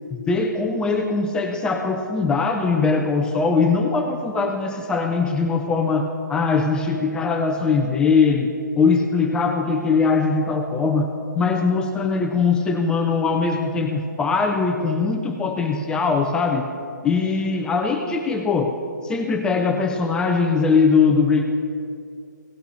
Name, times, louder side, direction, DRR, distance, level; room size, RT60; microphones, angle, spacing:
voice 1, 0.1-16.7 17.0-18.8 19.0-21.4, left 4 dB, 10° left, 4 dB, 0.4 m, -21 dB
16.5 x 5.8 x 5.6 m, 2.4 s
figure-of-eight pair, 140°, 10 cm